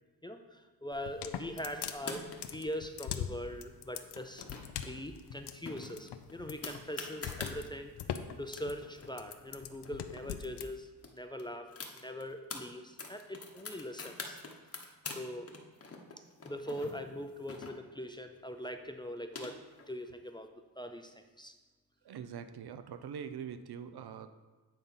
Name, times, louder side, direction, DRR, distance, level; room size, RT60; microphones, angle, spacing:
voice 1, 0.2-4.5 4.8-7.9 8.4-11.7 11.9-14.4 14.8-15.5 16.4-19.6 19.9-20.5 20.8-21.5, equal, 10° left, 6 dB, 0.4 m, -42 dB
sound 1, 0.9-10.7, left 9 dB, 80° left, 0.6 m, -41 dB
sound 2, 1.9-2.7 4.1-4.9 5.2-5.3 5.7-7.6 8.2-8.3 8.5-10.3 10.6-10.7 11.0-12.6 13.0-15.2 15.5-18.1 18.9-19.9, left 4 dB, 35° left, 1.0 m, -45 dB
voice 2, 22.0-24.3, right 7 dB, 70° right, 10 dB, 0.6 m, -43 dB
9.0 x 4.0 x 5.6 m, 1.3 s
wide cardioid pair, 100°, 40 cm